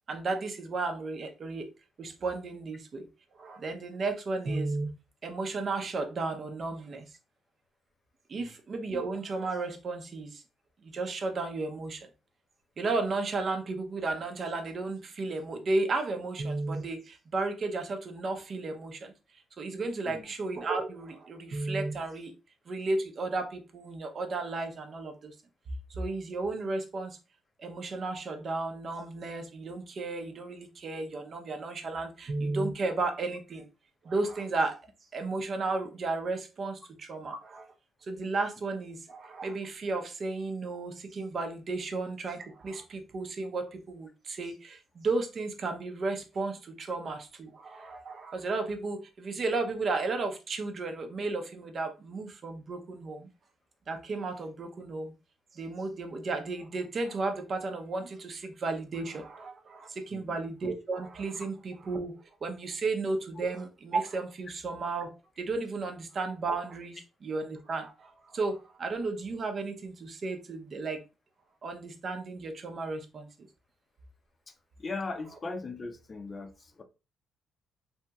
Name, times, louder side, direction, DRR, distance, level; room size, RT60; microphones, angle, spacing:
voice 1, 0.1-1.7 2.0-3.1 3.4-4.9 5.2-7.0 8.3-10.4 10.8-12.1 12.8-19.1 19.6-22.3 22.7-25.3 25.9-27.2 27.6-33.7 34.0-34.8 35.1-37.7 38.0-53.3 53.9-55.1 55.5-62.1 62.4-71.0 71.6-73.3, right 3 dB, 50° right, 0.6 m, -33 dB
voice 2, 74.8-76.8, left 3 dB, 35° left, 0.5 m, -39 dB
2.8 x 2.8 x 2.3 m
cardioid pair, 90°, 0 cm